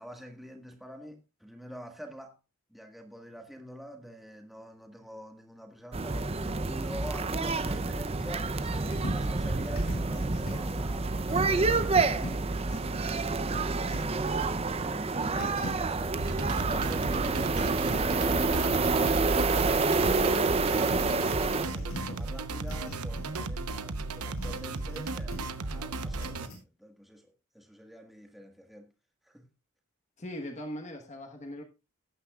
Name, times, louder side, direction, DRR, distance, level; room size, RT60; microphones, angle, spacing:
voice 1, 0.0-2.4 2.7-12.5 13.1-18.9 19.4-28.9 29.2-29.5, equal, ahead, 1.6 m, -46 dB
sound 1, 5.9-21.7, right 3 dB, 25° right, 0.6 m, -28 dB
sound 2, 8.3-8.4 8.7-9.3 9.7-11.6 11.9-14.2 15.2-16.0 17.2-18.0 18.5-19.7 20.0-20.4 20.7-23.4 23.7-25.0 25.3-25.6 26.1-26.6, left 1 dB, 70° left, 7.6 m, -41 dB
sound 3, 16.2-26.5, right 3 dB, 90° right, 1.0 m, -35 dB
voice 2, 30.2-31.6, equal, 30° left, 1.3 m, -39 dB
18.5 x 9.7 x 2.4 m
head